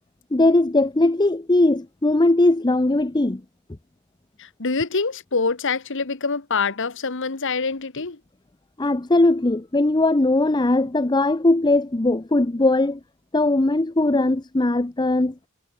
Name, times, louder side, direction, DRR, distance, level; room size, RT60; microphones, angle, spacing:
voice 1, 0.3-3.4 8.8-13.0 13.3-15.3, left 2 dB, 20° left, 0.7 m, -19 dB
voice 2, 4.4-8.2, left 4 dB, 60° left, 1.4 m, -25 dB
head